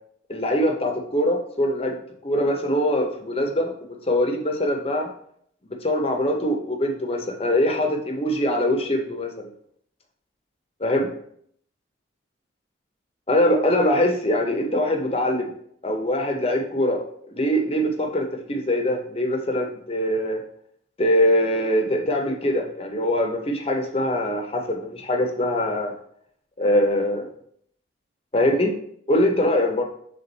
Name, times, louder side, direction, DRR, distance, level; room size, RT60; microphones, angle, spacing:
voice 1, 0.3-2.0 2.2-5.1 5.8-9.5 10.8-11.1 13.3-15.5 15.8-20.4 21.0-25.9 26.6-27.3 28.3-28.7 29.1-29.8, left 1 dB, 30° left, 3 dB, 0.8 m, -23 dB
7.0 x 3.7 x 4.0 m, 0.67 s
head